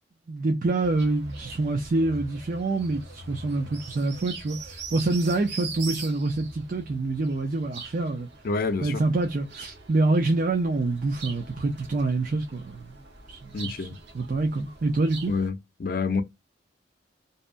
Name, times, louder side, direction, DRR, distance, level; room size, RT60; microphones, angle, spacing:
voice 1, 0.3-8.3 8.8-12.8 13.3-13.9 14.1-15.3, right 2 dB, 50° right, 0.5 m, -26 dB
sound 1, 0.8-15.5, right 4 dB, 85° right, 0.8 m, -42 dB
voice 2, 8.4-9.0 13.5-14.0 15.3-15.5 15.8-16.2, left 4 dB, 55° left, 0.4 m, -27 dB
2.7 x 2.2 x 2.4 m
head